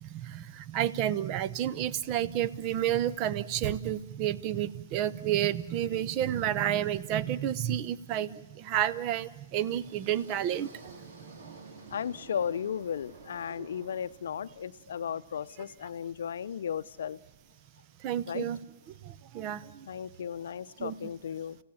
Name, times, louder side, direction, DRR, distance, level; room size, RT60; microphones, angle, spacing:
voice 1, 0.0-11.0 13.6-13.7 18.0-18.6 19.0-19.9 20.8-21.1, right 11 dB, 35° right, 17 dB, 0.8 m, -30 dB
sound 1, 9.5-14.6, right 3 dB, 65° right, 3.8 m, -51 dB
voice 2, 11.9-17.2 18.3-18.5 19.9-21.6, left 8 dB, 70° left, 14 dB, 0.6 m, -35 dB
30.0 x 16.0 x 7.2 m, 1.2 s
hypercardioid pair, 135°, 0 cm